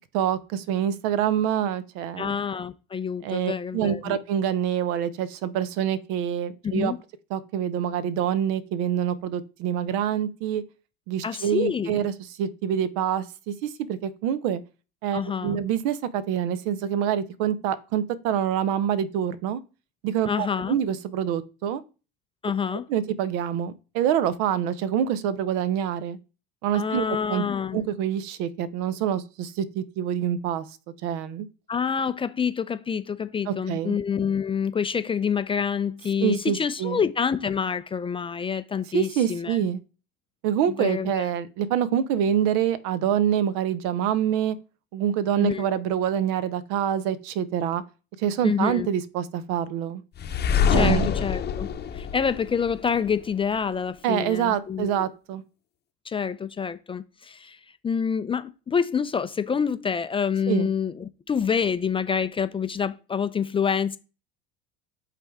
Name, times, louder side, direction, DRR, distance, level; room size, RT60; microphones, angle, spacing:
voice 1, 0.1-2.3 3.2-6.9 7.3-10.6 11.1-12.1 12.4-14.6 15.0-19.6 20.0-21.8 22.9-26.2 26.6-27.4 27.7-30.7 31.0-31.5 33.5-34.0 36.2-37.0 38.9-39.8 40.4-44.6 44.9-47.8 48.2-50.0 50.7-51.1 54.0-55.4 60.5-60.7, right 9 dB, 70° right, 0.7 m, -26 dB
voice 2, 2.2-4.2 6.6-7.0 11.2-12.0 15.1-15.6 20.3-20.8 22.4-22.8 26.7-27.8 31.7-39.6 40.7-41.3 45.4-45.7 48.4-48.9 50.7-51.7 51.9-55.1 56.1-64.0, left 6 dB, 20° left, 0.4 m, -27 dB
sound 1, 50.2-53.1, left 6 dB, 35° left, 0.8 m, -25 dB
8.2 x 3.4 x 3.5 m
supercardioid pair, 100°, 29 cm